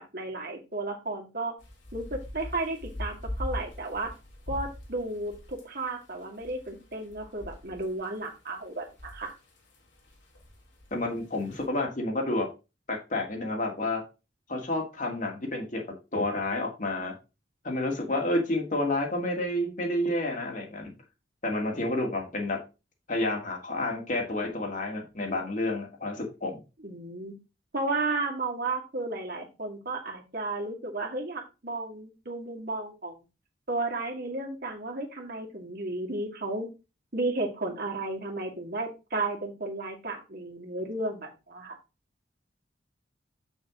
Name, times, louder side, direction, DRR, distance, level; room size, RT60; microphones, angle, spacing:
voice 1, 0.0-1.5 1.9-4.1 4.5-9.3 26.8-27.3 27.7-33.2 33.7-36.7 37.1-41.8, right 2 dB, 55° right, 1 dB, 2.1 m, -33 dB
sound 1, 1.6-11.7, left 1 dB, 90° left, 3.2 m, -42 dB
voice 2, 10.9-12.5 12.9-14.0 14.5-15.8 16.1-17.1 17.6-20.9 21.4-22.6 23.1-26.6, left 2 dB, 45° left, 1 dB, 2.1 m, -30 dB
7.4 x 6.3 x 3.7 m, 0.29 s
head